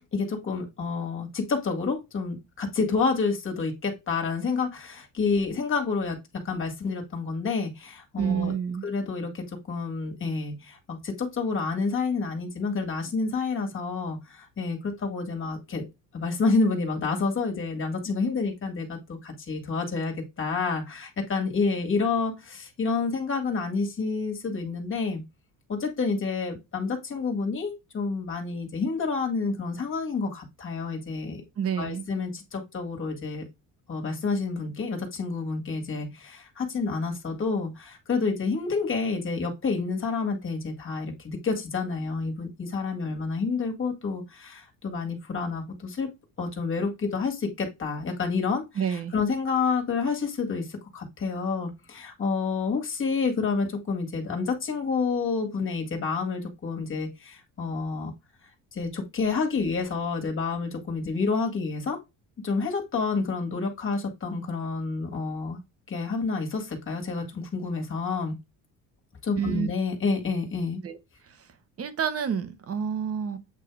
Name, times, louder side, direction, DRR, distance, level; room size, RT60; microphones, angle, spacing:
voice 1, 0.1-8.5 8.8-15.8 16.1-25.2 25.7-31.4 31.8-33.5 33.9-46.1 46.4-48.6 48.9-58.1 58.7-62.0 62.4-65.6 65.9-68.4 69.2-70.8, left 4 dB, 35° left, 2.0 m, -29 dB
voice 2, 8.2-8.9 31.6-32.1 48.8-49.2 69.4-69.7 70.8-71.0 71.3-71.4 71.8-73.4, right 7 dB, 40° right, 1.1 m, -28 dB
8.2 x 2.7 x 4.8 m
cardioid pair, 115°, 35 cm